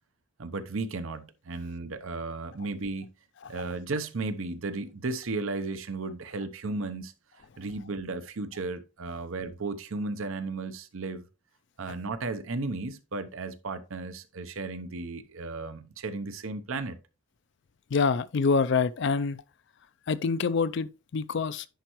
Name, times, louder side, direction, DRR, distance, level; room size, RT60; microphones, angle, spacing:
voice 1, 0.4-3.1 3.5-7.1 7.6-11.2 11.8-17.0, right 3 dB, 75° right, 0.8 m, -34 dB
voice 2, 17.9-19.4 20.1-21.7, left 5 dB, 55° left, 0.4 m, -26 dB
10.5 x 4.6 x 3.0 m
head